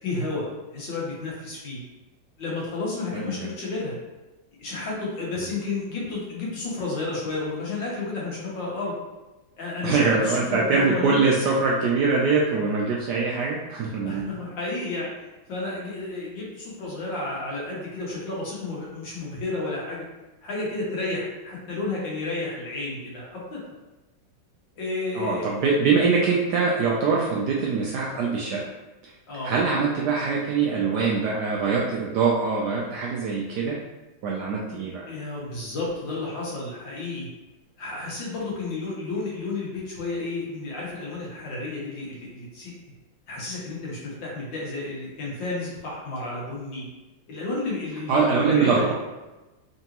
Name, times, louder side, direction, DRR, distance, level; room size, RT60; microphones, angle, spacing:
voice 1, 0.0-0.5 0.7-1.8 2.4-3.9 4.6-8.9 9.6-11.2 14.0-20.0 20.4-23.6 24.8-25.5 29.3-29.5 34.7-34.8 35.1-37.3 37.8-42.7 43.3-46.8 47.3-48.9, left 3 dB, 65° left, -5 dB, 1.8 m, -31 dB
voice 2, 3.1-3.5 9.8-14.3 25.1-28.6 29.4-33.8 34.2-35.1 48.1-48.9, right 4 dB, 75° right, -3 dB, 1.0 m, -23 dB
3.8 x 3.4 x 2.9 m, 1.1 s
omnidirectional pair, 2.2 m